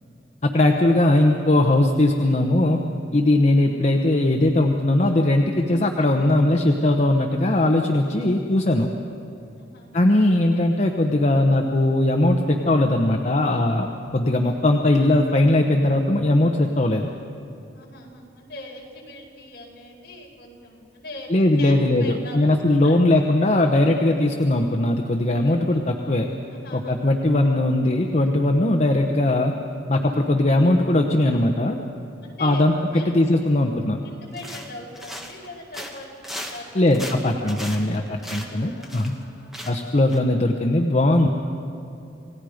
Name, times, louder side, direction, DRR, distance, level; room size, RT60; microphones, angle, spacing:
voice 1, 0.4-2.8 3.1-8.9 9.9-13.9 14.1-17.1 21.3-26.3 26.7-29.5 29.9-31.8 32.4-34.0 36.7-38.0 38.3-39.1 39.7-41.3, left 1 dB, 40° left, 3 dB, 0.9 m, -19 dB
voice 2, 9.4-10.0 17.7-23.0 25.2-25.8 26.5-27.0 32.2-33.1 34.0-36.9 37.7-39.6, left 2 dB, 60° left, -2 dB, 4.5 m, -41 dB
sound 1, 34.3-35.5 35.7-39.2 39.5-39.8 40.1-40.2, equal, ahead, 1.7 m, -37 dB
28.5 x 18.5 x 5.1 m, 2.6 s
head